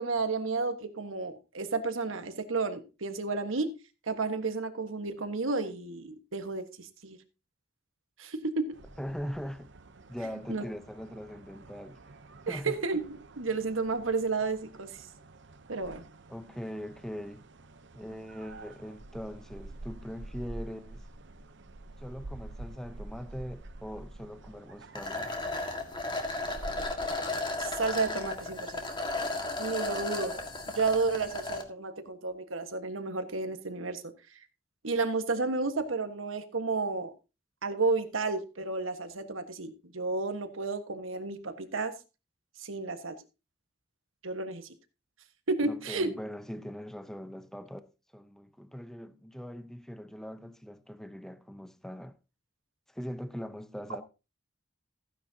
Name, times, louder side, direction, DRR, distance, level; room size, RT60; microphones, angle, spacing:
voice 1, 0.0-3.7 4.1-7.2 8.2-8.8 10.5-10.6 12.5-15.1 15.7-16.0 27.6-28.8 29.6-30.4 30.7-34.0 34.8-37.1 37.6-41.9 42.6-43.2 44.2-44.7 45.5-46.1, right 3 dB, 90° right, 1.4 m, -32 dB
sound 1, 8.7-27.1, right 2 dB, 65° right, 0.8 m, -48 dB
voice 2, 9.0-9.7 10.1-12.0 12.5-12.8 16.3-17.5 17.9-21.0 22.0-25.3 45.6-47.9 48.1-52.2 52.9-54.0, equal, ahead, 0.7 m, -41 dB
sound 2, 24.9-31.6, left 2 dB, 25° left, 1.8 m, -34 dB
15.0 x 9.9 x 2.8 m
head